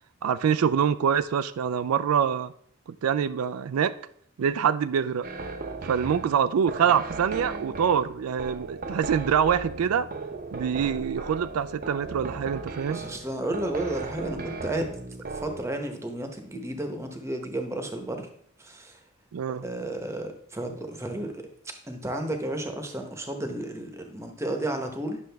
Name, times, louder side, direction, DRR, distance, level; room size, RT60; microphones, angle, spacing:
voice 1, 0.2-2.5 3.0-4.0 4.4-5.3 5.8-10.1 10.5-13.0 19.3-19.6, right 7 dB, 90° right, 14 dB, 0.4 m, -25 dB
sound 1, 5.2-15.7, right 3 dB, 45° right, 0.7 m, -37 dB
voice 2, 12.9-15.0 15.3-18.3 18.6-19.0 19.5-21.4 21.9-25.2, right 1 dB, 15° right, 5 dB, 0.9 m, -32 dB
9.7 x 6.4 x 3.4 m, 0.64 s
head